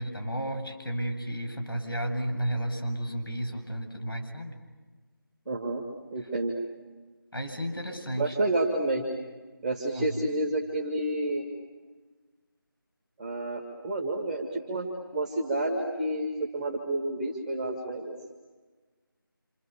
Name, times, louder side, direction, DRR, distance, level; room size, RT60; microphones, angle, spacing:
voice 1, 0.0-4.6 7.3-8.4 9.9-10.1, right 1 dB, 75° left, 5 dB, 7.7 m, -32 dB
voice 2, 5.5-5.8 6.1-6.5 8.2-9.0 9.6-11.5 13.2-18.1, right 2 dB, ahead, 2 dB, 1.2 m, -29 dB
29.5 x 27.5 x 7.1 m, 1.3 s
figure-of-eight pair, 170°, 12 cm